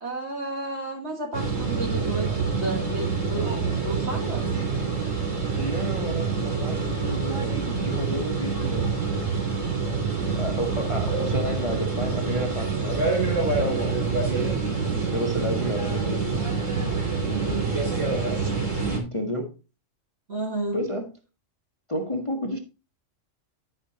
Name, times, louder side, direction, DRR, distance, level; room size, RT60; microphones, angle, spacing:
voice 1, 0.0-4.5 17.3-18.5 20.3-20.8, right 2 dB, 55° right, 1.8 m, -33 dB
sound 1, 1.3-19.0, right 4 dB, 75° right, 3.6 m, -26 dB
voice 2, 5.6-8.9 10.3-14.6 15.1-16.3 18.9-19.5 20.7-21.1 21.9-22.6, left 1 dB, 25° left, 1.0 m, -31 dB
13.0 x 5.6 x 2.8 m
omnidirectional pair, 1.3 m